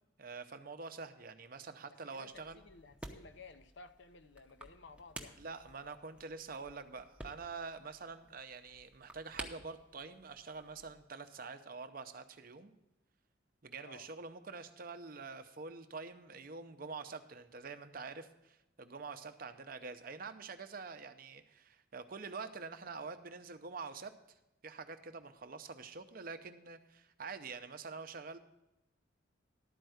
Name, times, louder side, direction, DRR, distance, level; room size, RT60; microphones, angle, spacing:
voice 1, 0.2-2.6 5.4-12.7 13.6-24.1 24.6-28.4, right 4 dB, 45° right, 9 dB, 0.6 m, -46 dB
voice 2, 1.9-5.4 13.8-14.1, left 4 dB, 65° left, 9 dB, 0.6 m, -56 dB
sound 1, 2.3-11.0, right 2 dB, 5° right, 0.7 m, -53 dB
12.0 x 4.6 x 7.8 m, 0.92 s
head